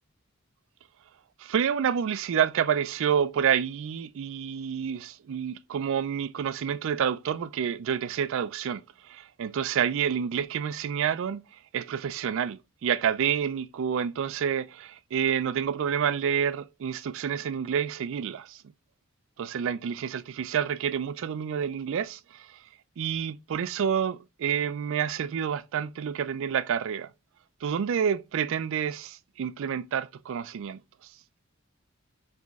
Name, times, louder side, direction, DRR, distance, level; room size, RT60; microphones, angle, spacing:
voice 1, 1.4-11.4 11.7-18.6 19.4-22.6 23.0-27.1 27.6-30.8, right 8 dB, 70° right, 0.3 m, -28 dB
4.3 x 2.9 x 3.5 m
head